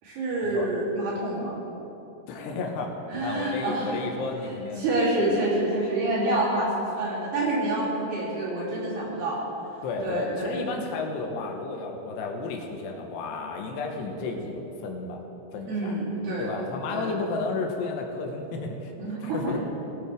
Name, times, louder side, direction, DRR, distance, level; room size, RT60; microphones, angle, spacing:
voice 1, 0.0-1.6 3.1-3.9 4.5-9.4 10.0-10.6 15.7-16.6 16.9-17.1 19.0-19.6, right 1 dB, 70° right, -8 dB, 5.1 m, -27 dB
voice 2, 2.3-4.8 9.8-15.2 15.5-15.9 16.4-18.9 19.2-19.6, left 3 dB, 80° left, 2 dB, 3.1 m, -32 dB
19.5 x 8.9 x 3.5 m, 3.0 s
omnidirectional pair, 4.9 m